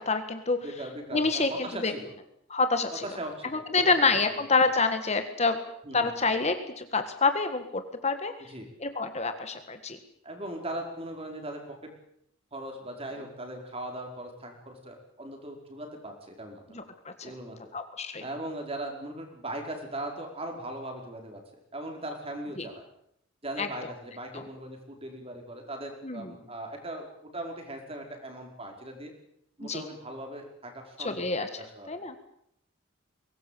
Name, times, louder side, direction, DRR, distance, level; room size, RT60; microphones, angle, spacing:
voice 1, 0.0-0.6 1.1-1.9 2.5-3.0 3.5-5.6 5.9-8.3 8.8-10.0 16.7-17.3 17.7-18.2 22.6-22.7 23.6-23.7 24.3-24.4 26.0-26.3 29.6-29.8 31.0-31.5 31.9-32.1, left 4 dB, 35° left, 8 dB, 1.7 m, -27 dB
voice 2, 0.6-2.1 3.0-4.0 5.8-6.1 8.5-8.7 10.2-11.8 12.5-16.8 17.2-17.7 18.2-21.4 21.7-22.8 23.4-27.1 27.3-29.1 29.6-31.3 31.6-32.0, right 1 dB, 30° right, 3 dB, 5.0 m, -39 dB
22.5 x 19.0 x 8.5 m, 0.72 s
head